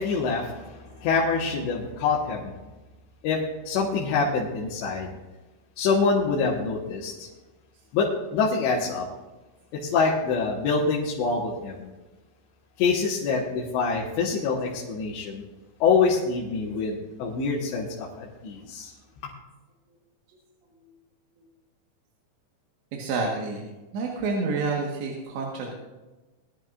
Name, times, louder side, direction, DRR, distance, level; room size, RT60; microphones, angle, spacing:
voice 1, 0.0-2.5 3.2-3.4 3.7-5.1 5.8-7.3 7.9-9.1 9.7-11.9 12.8-15.4 15.8-18.9, left 4 dB, 85° left, -5 dB, 3.8 m, -25 dB
voice 2, 22.9-23.7 23.9-25.7, right 3 dB, 85° right, -2 dB, 3.8 m, -29 dB
21.0 x 11.0 x 2.6 m, 1.1 s
omnidirectional pair, 4.9 m